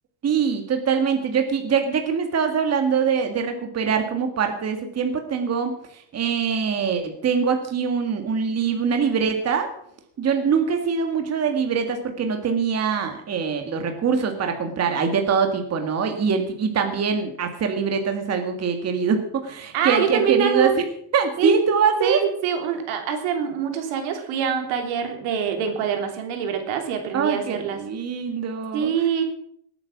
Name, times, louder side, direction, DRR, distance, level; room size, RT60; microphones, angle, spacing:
voice 1, 0.2-9.7 10.2-20.8 21.1-22.2 27.1-28.9, right 6 dB, 30° right, 5 dB, 2.0 m, -23 dB
voice 2, 19.7-20.7 21.4-21.6 22.0-27.8 28.7-29.2, right 8 dB, 80° right, 5 dB, 3.4 m, -24 dB
18.5 x 9.0 x 6.1 m, 0.67 s
cardioid pair, 135°, 47 cm